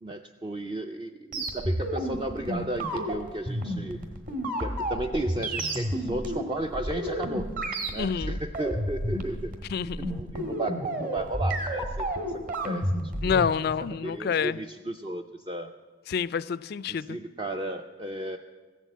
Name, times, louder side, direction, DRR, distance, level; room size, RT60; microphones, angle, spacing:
voice 1, 0.0-4.0 4.6-7.5 7.9-9.5 10.0-12.1 12.5-12.9 13.2-13.4 14.0-15.7 16.9-18.4, right 1 dB, 20° right, 4 dB, 0.4 m, -34 dB
sound 1, 1.3-13.5, right 1 dB, 45° right, 1.6 m, -31 dB
voice 2, 8.0-8.4 9.7-10.1 13.2-14.6 16.1-17.2, left 6 dB, 50° left, 19 dB, 0.3 m, -28 dB
15.5 x 7.4 x 8.4 m, 1.4 s
head